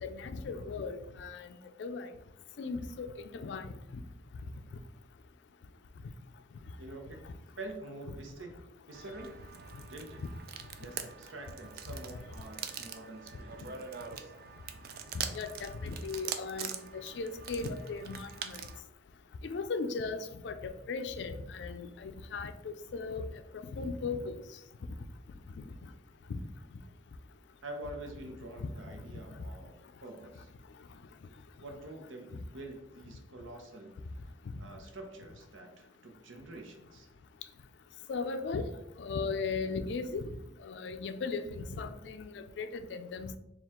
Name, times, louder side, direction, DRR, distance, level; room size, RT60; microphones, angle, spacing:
voice 1, 0.0-1.5 1.8-2.1 2.6-3.1 3.3-3.7 15.3-18.6 19.5-23.2 23.8-24.4 26.3-26.4 28.6-28.7 38.1-38.7 39.0-40.3 40.6-43.4, left 4 dB, 65° left, 9 dB, 0.3 m, -37 dB
voice 2, 6.8-7.2 7.6-8.5 8.9-9.3 9.9-10.2 10.8-13.9 14.2-14.3 27.6-30.5 31.6-33.9 34.6-37.1, right 2 dB, 90° right, 4 dB, 0.8 m, -46 dB
sound 1, 8.9-18.8, right 7 dB, 50° right, 0.3 m, -43 dB
4.3 x 2.4 x 3.6 m, 0.83 s
head